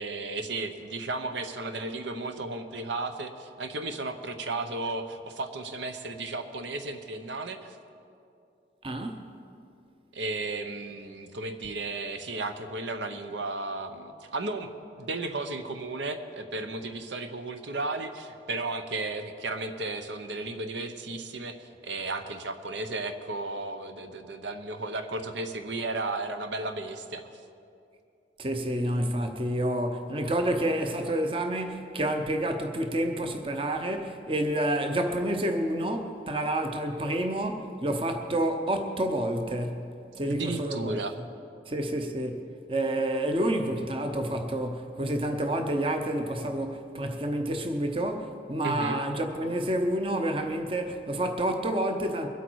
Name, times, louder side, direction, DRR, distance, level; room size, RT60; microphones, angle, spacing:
voice 1, 0.0-7.8 10.1-14.7 15.0-27.3 40.2-41.1 48.6-49.0, right 2 dB, 80° right, 0.8 m, -34 dB
voice 2, 8.8-9.3 28.4-39.9 40.1-41.0 41.7-52.3, right 1 dB, 30° right, 0.8 m, -29 dB
23.0 x 8.2 x 4.7 m
head